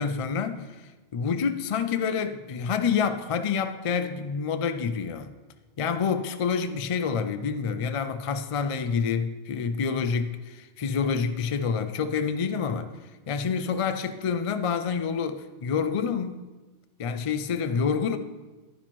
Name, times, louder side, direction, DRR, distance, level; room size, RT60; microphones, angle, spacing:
voice 1, 0.0-5.3 5.8-12.9 13.3-16.4 17.0-18.2, left 6 dB, 65° left, 0.3 m, -28 dB
10.5 x 10.0 x 3.0 m
omnidirectional pair, 1.2 m